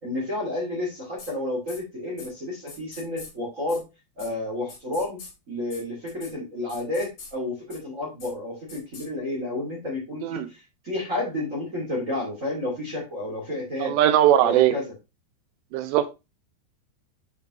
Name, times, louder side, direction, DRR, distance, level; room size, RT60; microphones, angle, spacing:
voice 1, 0.0-3.8 4.2-5.2 5.5-13.9 14.4-14.8, left 2 dB, 25° right, -4 dB, 1.9 m, -31 dB
sound 1, 1.2-1.3 1.7-1.8 2.2-2.3 2.7-3.3 3.7-3.8 4.2-4.3 4.7-5.3 5.7-5.8 6.1-6.3 6.7-7.3 7.7-7.8 8.2-8.3 8.7-9.1, left 4 dB, 40° left, 3.4 m, -43 dB
voice 2, 13.8-14.7 15.7-16.0, right 12 dB, 80° right, 10 dB, 2.6 m, -19 dB
8.0 x 5.3 x 3.0 m, 0.25 s
omnidirectional pair, 5.3 m